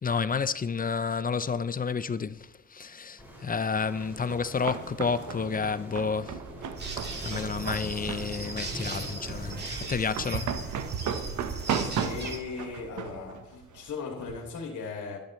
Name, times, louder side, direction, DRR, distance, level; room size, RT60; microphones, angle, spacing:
voice 1, 0.0-6.4 7.2-10.5, left 5 dB, 30° left, 0.7 m, -30 dB
sound 1, 3.2-9.7, equal, 5° right, 5.8 m, -44 dB
sound 2, 4.1-14.5, right 7 dB, 75° right, 1.2 m, -36 dB
sound 3, 6.8-12.4, right 3 dB, 35° right, 2.8 m, -37 dB
voice 2, 11.4-15.2, left 5 dB, 75° left, 2.6 m, -38 dB
29.5 x 10.5 x 3.2 m
cardioid pair, 90°, 30 cm